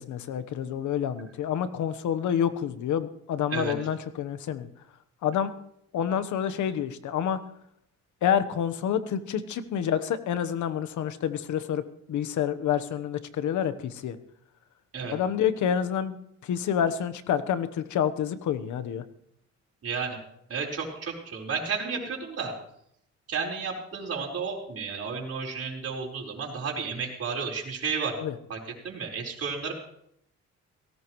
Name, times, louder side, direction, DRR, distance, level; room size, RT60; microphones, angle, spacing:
voice 1, 0.0-4.7 5.2-5.5 5.9-7.4 8.2-14.2 15.1-16.2 16.4-19.0 28.2-28.3, left 9 dB, 75° left, 12 dB, 1.2 m, -28 dB
voice 2, 19.8-20.1 20.5-22.5 23.3-28.2 28.5-28.6 28.8-29.7, right 5 dB, 50° right, -1 dB, 4.6 m, -32 dB
18.0 x 17.0 x 3.2 m, 0.73 s
cardioid pair, 90°, 30 cm